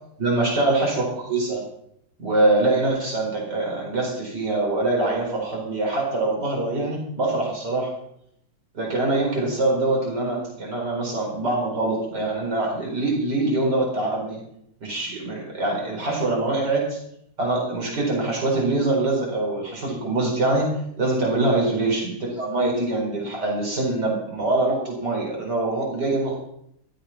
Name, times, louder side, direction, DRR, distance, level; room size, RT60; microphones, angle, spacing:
voice 1, 0.2-1.6 2.2-7.9 8.7-14.4 14.8-17.0 17.4-26.4, right 2 dB, 85° right, -1 dB, 5.0 m, -24 dB
15.5 x 12.5 x 5.8 m, 0.74 s
omnidirectional pair, 1.8 m